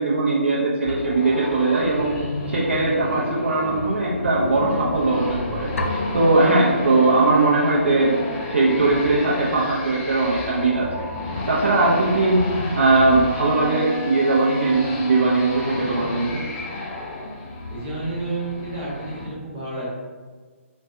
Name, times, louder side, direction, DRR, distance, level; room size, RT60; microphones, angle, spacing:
voice 1, 0.0-2.1 2.5-8.1 8.4-10.9 11.5-16.4, right 2 dB, 60° right, -5 dB, 0.6 m, -20 dB
sound 1, 0.8-19.2, left 1 dB, 30° left, 0.6 m, -31 dB
sound 2, 5.8-7.6, left 1 dB, 75° left, 0.4 m, -30 dB
voice 2, 17.4-19.9, right 2 dB, 20° right, -7 dB, 1.0 m, -31 dB
4.1 x 2.2 x 2.6 m, 1.4 s
figure-of-eight pair, 135°, 7 cm